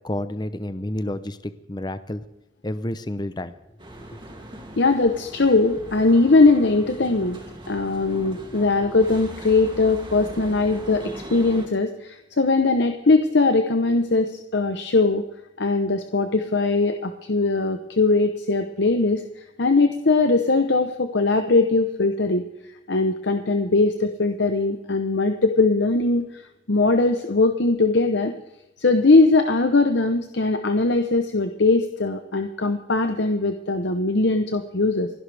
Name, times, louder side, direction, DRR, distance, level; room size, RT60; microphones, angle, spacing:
voice 1, 0.0-2.2 2.6-3.6 4.1-4.2, left 1 dB, 20° left, 12 dB, 0.7 m, -30 dB
sound 1, 3.8-11.7, right 1 dB, 25° right, 2.6 m, -40 dB
voice 2, 4.8-7.4 7.7-15.2 15.6-19.2 19.6-22.5 22.9-26.4 26.7-28.3 28.8-35.1, left 3 dB, 60° left, 7 dB, 0.9 m, -20 dB
28.5 x 11.5 x 3.5 m, 0.97 s
head